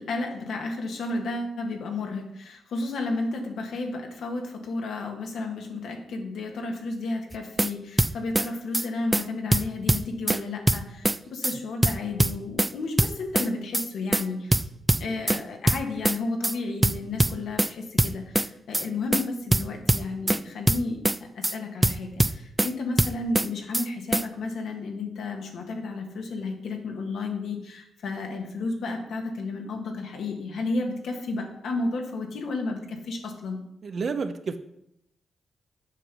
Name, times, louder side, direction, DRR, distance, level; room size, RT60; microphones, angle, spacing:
voice 1, 0.0-14.7 15.0-21.0 21.3-33.6, left 3 dB, 75° left, 3 dB, 1.5 m, -32 dB
sound 1, 7.3-7.7 8.0-8.5 8.7-8.9 9.1-9.2 9.5-10.4 10.7-11.2 11.4-11.6 11.8-12.7 13.0-13.5 13.7-13.9 14.1-14.2 14.5-15.4 15.7-16.2 16.4-16.6 16.8-17.7 18.0-18.5 18.7-18.9 19.1-19.2 19.5-20.4 20.7-21.2 21.4-21.6 21.8-22.7 23.0-23.5 23.7-23.9 24.1-24.2, right 1 dB, 15° right, 0.4 m, -22 dB
voice 2, 33.8-34.6, right 5 dB, 55° right, 9 dB, 0.7 m, -30 dB
7.5 x 5.2 x 6.1 m, 0.79 s
cardioid pair, 65°, 0 cm